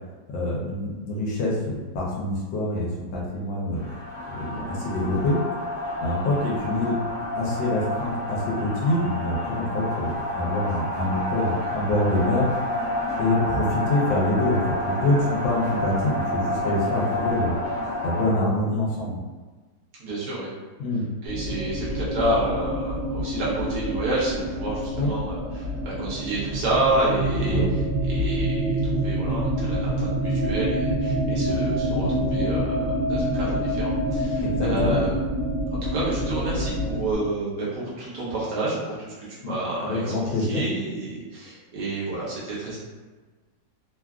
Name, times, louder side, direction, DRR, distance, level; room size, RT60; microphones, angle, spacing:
voice 1, 0.3-3.9 4.3-5.4 6.0-7.0 7.3-12.5 13.2-17.5 18.0-19.2 20.8-21.0 25.0-25.1 27.4-27.6 34.4-35.1 39.4-39.5 39.8-40.6, left 1 dB, 75° left, -4 dB, 1.4 m, -25 dB
sound 1, 3.7-18.4, left 1 dB, 60° left, 1.0 m, -29 dB
voice 2, 20.0-20.5 21.2-27.6 28.0-35.1 35.7-40.0 40.5-42.8, right 2 dB, 65° right, -7 dB, 1.3 m, -29 dB
sound 2, 21.3-37.1, right 1 dB, 40° right, 0.8 m, -26 dB
3.4 x 2.3 x 2.3 m, 1.4 s
omnidirectional pair, 2.1 m